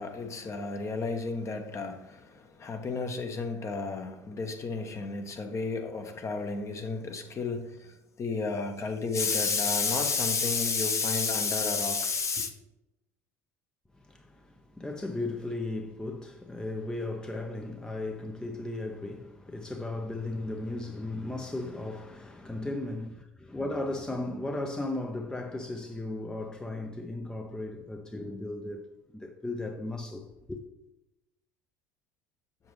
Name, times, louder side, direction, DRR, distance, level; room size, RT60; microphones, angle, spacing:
voice 1, 0.0-12.5, left 4 dB, 35° left, 1.1 m, -31 dB
voice 2, 13.9-28.9 29.1-30.6, left 2 dB, 10° left, 0.7 m, -36 dB
7.1 x 6.9 x 3.2 m
hypercardioid pair, 65°, 8 cm